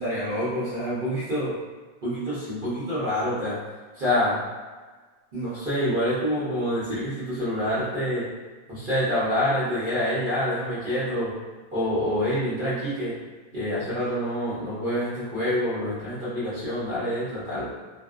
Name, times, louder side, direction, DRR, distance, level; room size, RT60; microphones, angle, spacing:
voice 1, 0.0-1.5 2.0-3.6 3.9-4.4 5.3-8.3 8.7-11.3 11.7-13.1 13.5-17.7, equal, 50° right, -11 dB, 0.6 m, -27 dB
2.5 x 2.1 x 2.3 m, 1.4 s
omnidirectional pair, 1.6 m